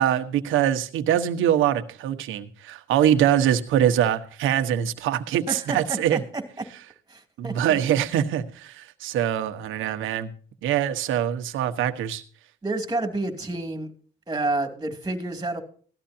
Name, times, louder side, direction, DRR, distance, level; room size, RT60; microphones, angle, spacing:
voice 1, 0.0-6.2 7.4-10.3 10.6-12.2, right 10 dB, 90° right, 8 dB, 1.3 m, -23 dB
voice 2, 5.5-5.8 6.1-6.4 7.1-7.8 12.6-13.9 14.3-15.6, right 2 dB, 20° right, 6 dB, 2.7 m, -29 dB
17.0 x 13.0 x 2.8 m, 0.43 s
cardioid pair, 90°, 20 cm